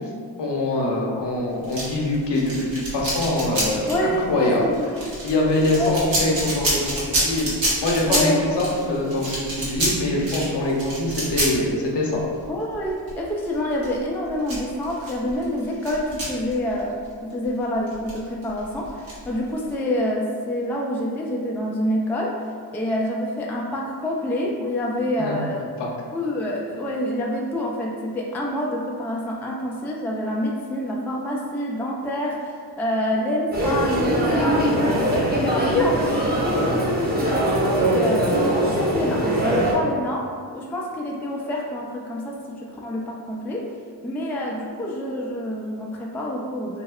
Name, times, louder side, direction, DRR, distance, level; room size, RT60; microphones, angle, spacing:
voice 1, 0.4-4.6 5.2-7.5 7.8-8.3 8.6-12.1 25.2-25.3 25.8-25.9 36.6-36.9, left 2 dB, 55° left, -2 dB, 0.8 m, -24 dB
sound 1, 1.6-17.5 17.9-19.7, right 1 dB, 65° right, 1.4 m, -28 dB
voice 2, 3.9-5.1 5.7-5.9 8.1-9.0 12.5-22.4 22.7-25.6 26.1-35.1 35.4-37.3 37.7-43.6 44.0-46.8, left 1 dB, 5° left, -2 dB, 0.3 m, -27 dB
sound 2, 33.5-39.7, right 1 dB, 20° right, 0.8 m, -21 dB
3.1 x 2.7 x 2.3 m, 2.1 s
supercardioid pair, 45°, 49 cm